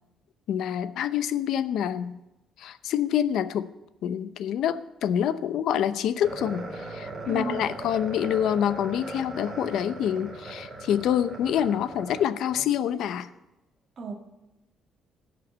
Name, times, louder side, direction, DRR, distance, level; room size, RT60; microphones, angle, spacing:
voice 1, 0.5-2.2 2.6-3.7 4.0-13.3, left 9 dB, 75° left, 13 dB, 0.7 m, -27 dB
sound 1, 6.2-12.7, right 2 dB, 20° right, 4.8 m, -39 dB
voice 2, 7.2-7.6 14.0-14.1, right 4 dB, 40° right, 1 dB, 1.7 m, -33 dB
16.5 x 6.5 x 8.0 m, 0.97 s
cardioid pair, 125°, 0 cm